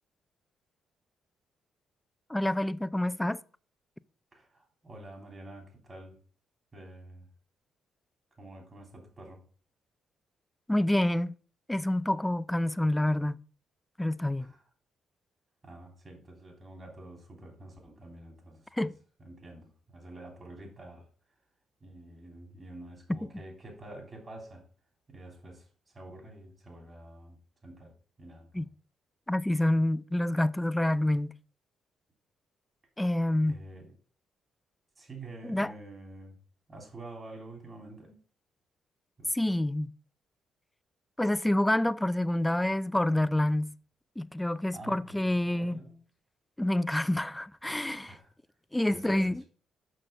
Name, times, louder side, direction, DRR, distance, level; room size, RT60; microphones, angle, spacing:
voice 1, 2.3-3.4 10.7-11.3 11.7-13.4 14.0-14.5 18.7-18.9 28.5-28.7 29.3-31.3 33.0-33.6 35.4-35.7 39.3-39.9 41.2-43.7 44.2-45.8 46.6-48.2 48.7-49.4, left 1 dB, 10° left, 0.4 m, -27 dB
voice 2, 4.3-6.2 6.7-7.3 8.4-9.4 14.4-14.6 15.6-18.7 19.2-21.0 21.8-24.7 25.1-25.7 25.9-27.4 27.6-28.6 33.5-33.9 35.0-36.4 36.7-38.2 39.2-39.3 44.7-46.0 48.1-48.3 48.9-49.5, right 2 dB, 35° right, 3.5 m, -48 dB
6.5 x 6.2 x 5.3 m
cardioid pair, 90°, 0 cm